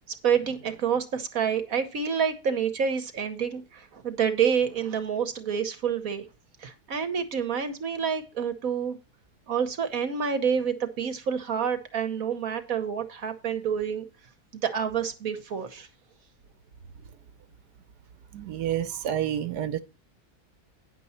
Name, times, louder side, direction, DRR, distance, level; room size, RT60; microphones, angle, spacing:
voice 1, 0.1-6.3 6.6-9.0 9.5-14.1 14.5-15.9, right 7 dB, 65° right, 1.3 m, -28 dB
voice 2, 18.3-19.8, right 10 dB, 85° right, 1.3 m, -29 dB
10.0 x 6.8 x 4.2 m
omnidirectional pair, 1.7 m